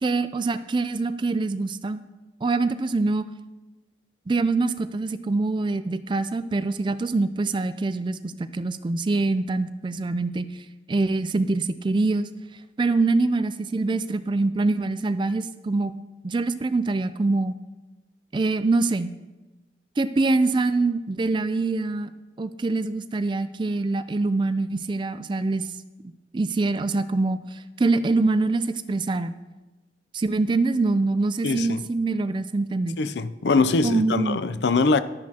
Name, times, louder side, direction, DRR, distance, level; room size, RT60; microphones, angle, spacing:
voice 1, 0.0-2.0 2.4-3.2 4.3-10.5 10.9-12.3 12.8-15.9 16.2-17.5 18.3-19.1 20.0-22.1 22.4-25.7 26.3-29.4 30.1-33.0 33.8-34.4, right 3 dB, 25° right, 0.3 m, -24 dB
voice 2, 31.4-31.8 33.0-35.0, left 4 dB, 65° left, 0.5 m, -22 dB
12.5 x 10.5 x 2.9 m
head